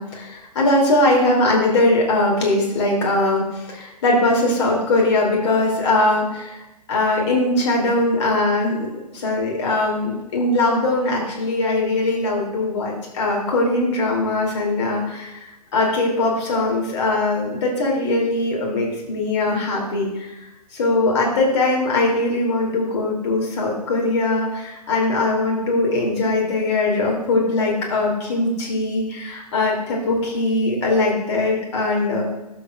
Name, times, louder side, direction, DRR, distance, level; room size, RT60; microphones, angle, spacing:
voice 1, 0.0-8.8 9.1-20.3 20.7-32.2, left 2 dB, 45° left, -1 dB, 2.9 m, -21 dB
12.0 x 6.8 x 2.4 m, 1.0 s
figure-of-eight pair, 125°, 21 cm